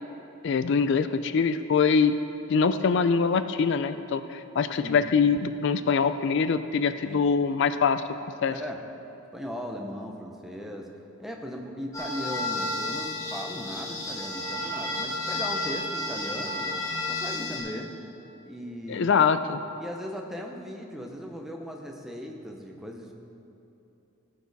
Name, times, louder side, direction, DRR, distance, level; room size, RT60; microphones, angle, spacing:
voice 1, 0.4-2.2 2.5-8.0 8.4-8.5 18.9-19.6, left 5 dB, 55° left, 11 dB, 0.4 m, -23 dB
voice 2, 8.5-8.8 9.3-10.9 11.2-16.7 17.1-17.9 18.4-19.1 19.8-23.1, equal, ahead, 1 dB, 0.8 m, -38 dB
sound 1, 11.9-17.6, left 2 dB, 15° left, 1.8 m, -32 dB
16.5 x 6.5 x 4.1 m, 2.9 s
head